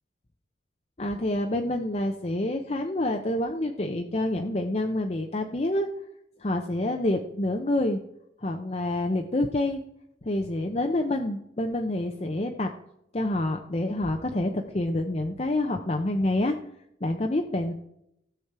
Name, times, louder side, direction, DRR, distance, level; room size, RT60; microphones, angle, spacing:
voice 1, 1.0-5.9 6.4-8.0 8.4-9.8 10.2-12.7 13.1-16.6 17.0-17.7, left 1 dB, 35° left, 3 dB, 0.7 m, -27 dB
15.0 x 7.1 x 4.7 m, 0.78 s
head